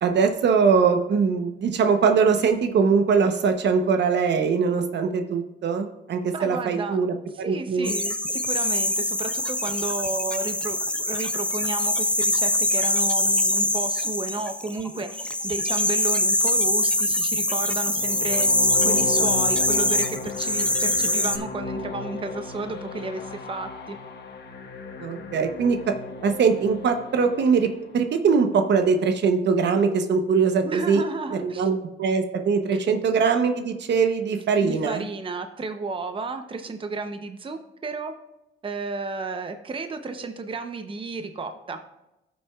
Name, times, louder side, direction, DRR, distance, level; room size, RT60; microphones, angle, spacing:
voice 1, 0.0-7.1 7.5-7.9 25.0-25.9 26.2-27.7 27.9-31.0 31.3-35.0, right 5 dB, 60° right, 6 dB, 0.9 m, -22 dB
voice 2, 6.3-7.0 7.3-18.5 18.8-24.0 30.6-31.7 32.7-32.8 34.6-38.1 38.6-41.8, right 3 dB, 25° right, 7 dB, 0.8 m, -33 dB
sound 1, 7.8-21.4, left 1 dB, 5° left, 0.6 m, -24 dB
sound 2, 17.8-27.9, left 4 dB, 60° left, 1.2 m, -35 dB
14.5 x 6.2 x 2.4 m, 0.92 s
cardioid pair, 90°, 20 cm